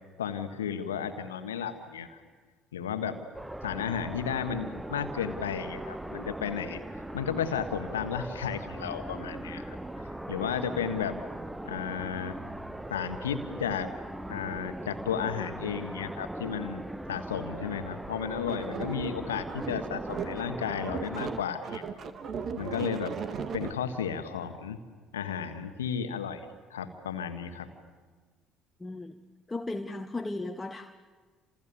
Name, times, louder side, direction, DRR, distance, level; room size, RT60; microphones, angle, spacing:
voice 1, 0.2-2.2 2.7-3.2 3.6-6.8 7.1-9.8 10.3-11.2 11.6-12.4 12.9-13.9 14.3-21.8 22.6-23.2 23.5-24.8 25.1-27.7, left 7 dB, 80° left, 8 dB, 1.5 m, -33 dB
sound 1, 3.3-21.4, right 1 dB, 10° right, 1.1 m, -40 dB
sound 2, 18.5-20.5 20.8-23.7, right 6 dB, 45° right, 2.0 m, -37 dB
voice 2, 28.8-29.1 29.5-30.9, left 2 dB, 15° left, 5 dB, 1.3 m, -36 dB
30.0 x 27.5 x 7.2 m, 1.5 s
figure-of-eight pair, 55°, 0 cm